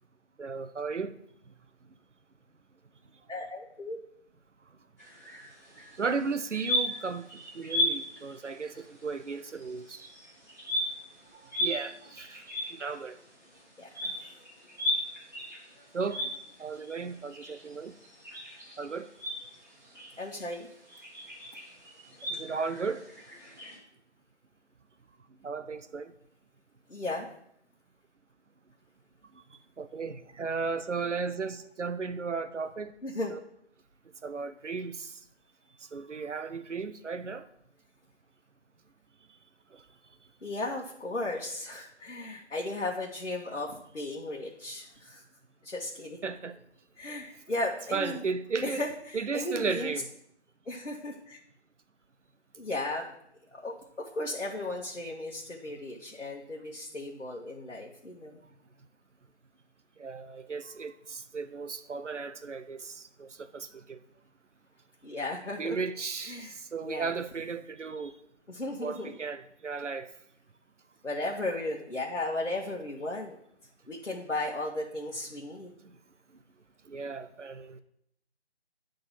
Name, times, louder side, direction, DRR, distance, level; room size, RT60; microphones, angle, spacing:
voice 1, 0.4-1.1 6.0-7.3 7.5-10.1 11.6-12.4 12.8-13.2 15.9-16.2 16.6-17.9 18.8-19.1 22.3-23.0 25.4-26.1 29.8-32.9 33.3-33.4 34.2-35.1 35.9-37.5 46.2-46.6 47.9-48.9 49.1-50.1 60.0-64.0 65.6-68.1 68.8-70.1 76.9-77.8, right 5 dB, 90° right, 0.7 m, -35 dB
voice 2, 3.3-4.0 13.8-14.2 20.2-20.7 26.9-27.3 33.0-33.4 40.4-45.2 45.6-46.2 47.0-48.2 48.6-49.9 50.6-51.4 52.5-53.1 53.5-58.4 65.0-65.8 66.3-66.6 66.8-67.1 68.5-69.2 71.0-73.4 73.9-75.7, left 2 dB, 85° left, 1.4 m, -35 dB
sound 1, 5.0-23.8, left 1 dB, 15° right, 1.5 m, -37 dB
10.0 x 3.9 x 5.7 m
figure-of-eight pair, 170°, 35 cm